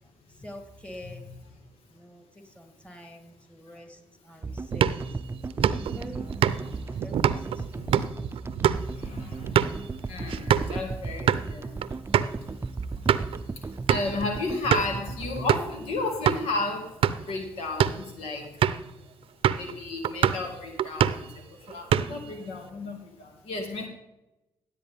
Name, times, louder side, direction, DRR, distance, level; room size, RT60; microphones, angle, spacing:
voice 1, 0.3-1.3 1.9-5.2 5.7-7.9, equal, 10° left, 4 dB, 2.9 m, -46 dB
sound 1, 4.4-16.8, right 3 dB, 25° right, 0.6 m, -36 dB
sound 2, 4.7-10.8 11.1-11.5 11.8-11.9 12.1-12.3 12.8-13.4 13.9-14.2 14.7-15.0 15.5-15.8 16.3-16.4 16.9-17.3 17.7-18.1 18.6-18.9 19.4-19.7 20.0-20.5 20.8-21.3 21.7-22.3, right 9 dB, 65° right, 0.6 m, -25 dB
voice 2, 9.0-9.6 10.1-11.7 13.9-16.9 17.3-18.5 19.5-21.3 21.7-23.9, left 3 dB, 75° left, 3 dB, 2.0 m, -33 dB
15.5 x 8.1 x 3.5 m, 0.93 s
supercardioid pair, 55°, 10 cm